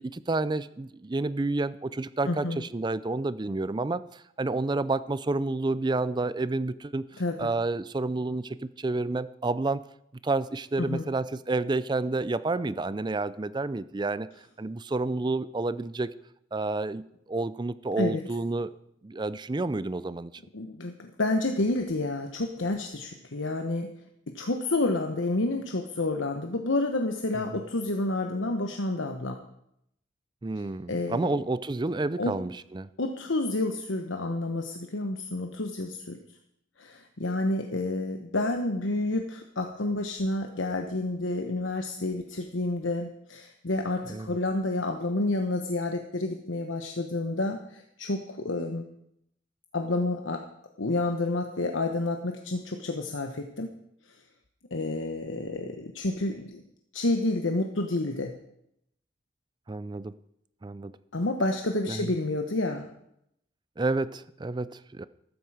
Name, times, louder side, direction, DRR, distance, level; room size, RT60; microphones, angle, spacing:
voice 1, 0.0-9.8 10.2-14.3 14.6-16.1 16.5-18.7 19.0-20.3 27.5-27.6 30.4-32.9 44.1-44.3 59.7-60.1 60.6-60.9 61.9-62.1 63.8-65.0, right 2 dB, 25° right, 16 dB, 0.4 m, -30 dB
voice 2, 2.2-2.6 7.2-7.5 10.8-11.0 18.0-18.2 20.5-23.9 24.3-29.4 30.9-31.4 32.2-32.3 33.0-36.2 36.8-48.8 49.7-50.4 50.8-53.7 54.7-56.6 56.9-58.3 61.1-62.9, left 2 dB, 85° left, 4 dB, 1.1 m, -29 dB
14.0 x 13.5 x 4.9 m, 0.77 s
head